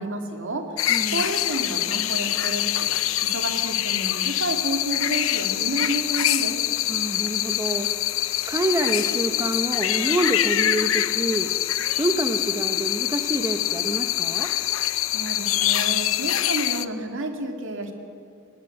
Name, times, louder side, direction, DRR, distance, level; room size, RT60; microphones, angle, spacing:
voice 1, 0.0-2.9 3.2-6.6 15.1-17.9, right 2 dB, 65° right, 5 dB, 2.3 m, -30 dB
sound 1, 0.8-16.8, left 13 dB, 75° left, 0.6 m, -25 dB
voice 2, 0.9-1.2 6.9-7.9 8.5-11.5 12.0-14.5, right 1 dB, 15° right, 6 dB, 0.9 m, -27 dB
20.5 x 19.0 x 7.9 m, 2.4 s
head